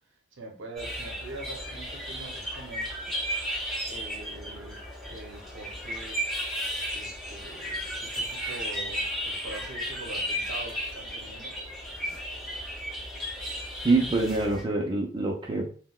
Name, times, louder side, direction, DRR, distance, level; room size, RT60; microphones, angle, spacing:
voice 1, 0.3-2.9 3.9-6.2 6.9-11.6, right 2 dB, 75° right, 1 dB, 0.7 m, -43 dB
sound 1, 0.8-14.6, equal, ahead, 1.4 m, -34 dB
voice 2, 13.8-15.7, right 3 dB, 25° right, -1 dB, 0.4 m, -25 dB
3.8 x 2.1 x 2.2 m, 0.41 s
head